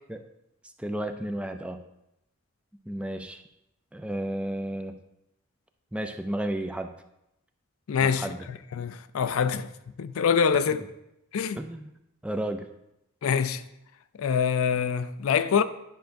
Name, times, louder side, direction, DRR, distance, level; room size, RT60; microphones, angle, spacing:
voice 1, 0.8-1.8 2.9-3.4 3.9-5.0 5.9-6.9 8.0-8.4 11.6-11.9 12.2-12.7, right 1 dB, 5° right, 0.3 m, -32 dB
voice 2, 7.9-8.3 8.7-9.7 10.0-10.9 11.3-11.6 13.2-13.6 14.2-15.6, left 6 dB, 75° left, 0.4 m, -25 dB
10.0 x 5.7 x 2.6 m
head